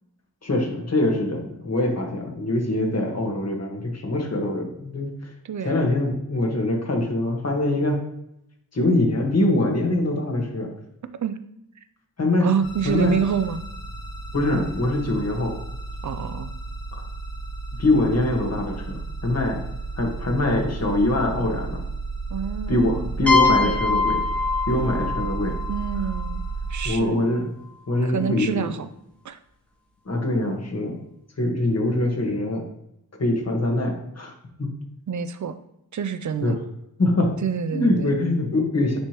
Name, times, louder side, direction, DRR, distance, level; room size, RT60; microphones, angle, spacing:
voice 1, 0.4-5.3 5.6-8.0 8.7-10.7 12.2-12.5 12.8-13.1 14.3-15.6 17.8-19.6 20.0-21.8 22.7-24.2 24.7-25.6 26.8-27.5 27.9-28.7 30.0-31.0 31.4-32.7 33.2-34.3 34.6-34.7 36.4-36.6 37.0-37.3 37.7-39.0, left 1 dB, 40° left, 0 dB, 1.6 m, -23 dB
voice 2, 5.4-5.9 11.2-11.4 12.4-13.6 16.0-16.5 22.3-22.9 23.4-23.8 25.7-26.4 26.7-27.3 28.0-28.9 29.2-29.4 35.1-35.5 35.9-36.6 37.4-38.1, right 7 dB, 50° right, 11 dB, 0.5 m, -27 dB
sound 1, 12.6-26.9, right 3 dB, 60° left, 2.4 m, -33 dB
sound 2, 23.3-26.9, left 4 dB, 5° left, 1.2 m, -24 dB
9.9 x 3.3 x 3.0 m, 0.80 s
wide cardioid pair, 80°, 38 cm